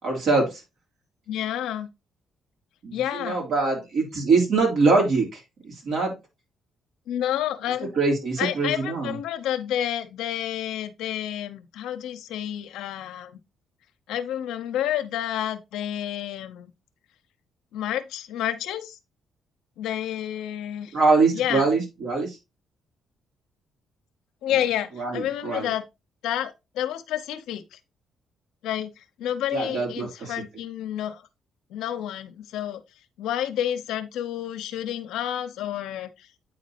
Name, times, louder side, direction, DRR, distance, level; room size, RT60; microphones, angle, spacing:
voice 1, 0.0-0.6 2.8-6.1 7.9-9.2 20.9-22.4 25.0-25.7 29.5-30.3, right 3 dB, 70° right, 3.2 m, -23 dB
voice 2, 1.3-1.9 2.9-3.4 7.1-7.9 8.4-13.4 14.1-16.7 17.7-19.0 19.8-21.0 21.3-21.7 24.4-25.8 26.2-27.8 28.6-31.2 31.7-32.8 33.2-36.5, left 11 dB, 85° left, 0.7 m, -30 dB
8.8 x 4.0 x 2.9 m
cardioid pair, 90°, 0 cm